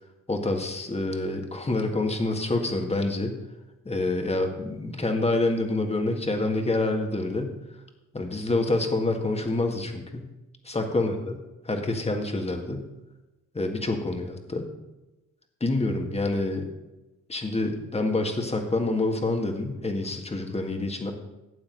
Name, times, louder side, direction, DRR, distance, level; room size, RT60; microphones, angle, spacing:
voice 1, 0.3-3.4 3.9-7.5 8.1-10.3 10.7-11.4 11.6-12.8 13.5-14.7 15.6-16.7 17.3-21.1, left 2 dB, 20° left, 4 dB, 1.8 m, -27 dB
12.5 x 8.5 x 4.0 m, 1.0 s
cardioid pair, 95°, 30 cm